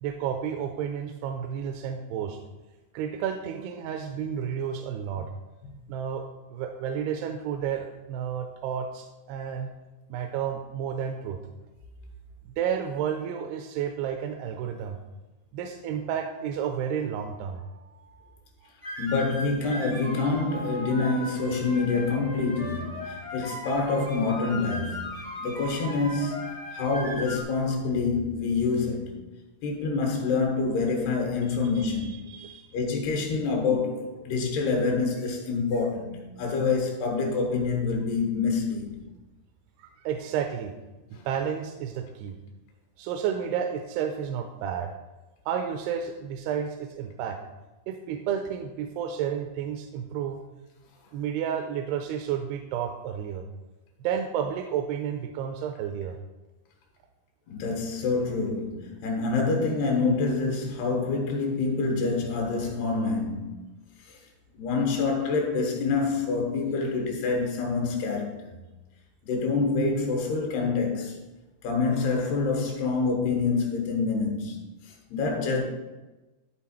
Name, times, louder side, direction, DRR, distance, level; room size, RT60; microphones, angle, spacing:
voice 1, 0.0-2.4 2.9-5.3 5.9-6.2 6.5-9.7 10.1-11.4 12.5-15.0 15.5-18.3 31.5-32.7 39.8-40.7 41.1-42.4 43.0-44.9 45.5-47.4 47.9-50.4 51.1-53.5 54.0-56.2, right 8 dB, 85° right, 2.6 m, -31 dB
sound 1, 18.8-27.4, left 1 dB, 35° left, 0.5 m, -37 dB
voice 2, 19.0-29.2 29.6-32.3 32.7-39.0 41.1-41.2 57.5-63.5 64.0-64.3 64.5-68.6 69.2-71.2 71.6-75.6, left 4 dB, 80° left, 3.4 m, -27 dB
12.0 x 4.1 x 4.3 m
omnidirectional pair, 4.5 m